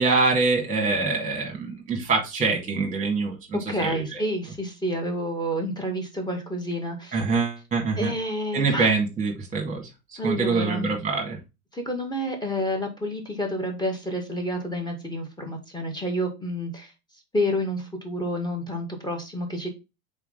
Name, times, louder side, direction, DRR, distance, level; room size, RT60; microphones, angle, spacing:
voice 1, 0.0-4.2 7.1-8.1 8.5-9.9 10.2-11.4, right 4 dB, 15° right, 1 dB, 2.2 m, -25 dB
voice 2, 3.7-7.2 8.0-8.9 10.2-10.9 11.7-16.9 17.3-19.7, equal, 10° left, 2 dB, 2.0 m, -29 dB
5.7 x 4.2 x 3.9 m, 0.25 s
figure-of-eight pair, 85°, 45 cm